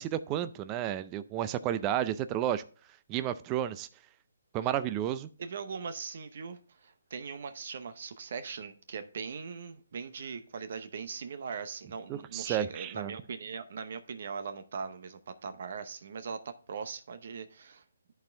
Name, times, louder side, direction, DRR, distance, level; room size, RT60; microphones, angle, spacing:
voice 1, 0.0-2.6 3.1-3.9 4.5-5.3 12.1-13.1, right 11 dB, 20° right, 0.4 m, -32 dB
voice 2, 5.4-17.8, right 5 dB, 55° right, 0.8 m, -40 dB
11.5 x 4.3 x 3.3 m
hypercardioid pair, 160°, 0 cm